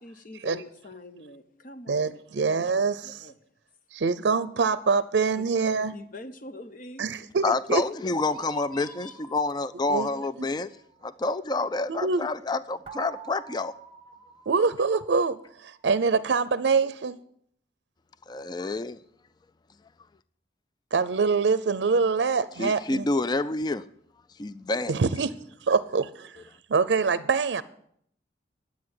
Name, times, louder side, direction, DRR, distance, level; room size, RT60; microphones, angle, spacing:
voice 1, 0.0-3.4 5.4-5.5 5.9-7.1 7.5-9.2 24.9-25.3, left 2 dB, 50° left, 0.9 m, -45 dB
voice 2, 1.9-3.2 3.9-5.9 7.0-7.8 9.9-10.1 11.9-12.3 14.5-17.2 20.9-23.1 24.9-25.3 25.6-26.4 26.7-27.6, right 4 dB, 85° right, 0.5 m, -25 dB
voice 3, 7.4-10.7 11.0-13.7 18.3-19.0 22.6-23.8 24.4-24.9, left 3 dB, 25° left, 0.4 m, -28 dB
sound 1, 8.3-11.2 12.9-15.7, right 6 dB, 30° right, 1.0 m, -47 dB
11.5 x 8.3 x 7.7 m
head